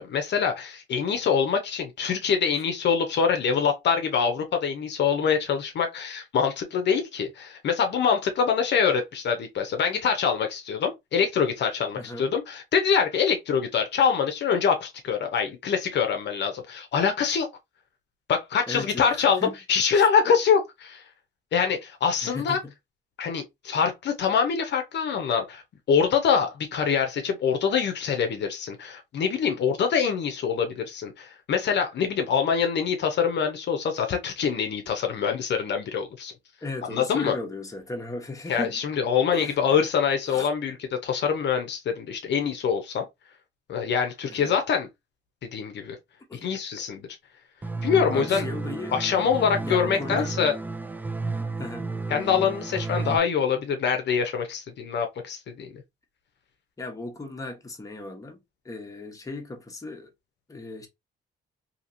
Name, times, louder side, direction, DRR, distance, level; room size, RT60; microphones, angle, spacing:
voice 1, 0.0-17.5 18.3-21.0 21.5-22.6 23.2-25.6 25.9-36.3 36.9-37.3 38.5-43.1 43.7-44.9 45.5-46.0 46.4-47.1 47.8-48.5 48.9-50.5 52.1-55.8, left 6 dB, 60° left, 0.7 m, -25 dB
voice 2, 11.9-12.3 18.7-19.6 19.9-20.1 22.2-22.6 36.6-38.8 39.3-39.8 40.3-40.5 44.3-44.5 46.4-46.6 48.1-49.0 49.6-50.3 51.6-51.9 56.8-58.4 58.6-60.1 60.5-60.9, left 2 dB, 15° left, 1.0 m, -36 dB
sound 1, 47.6-53.2, right 3 dB, 10° right, 0.3 m, -32 dB
2.8 x 2.8 x 2.5 m
cardioid pair, 90°, 20 cm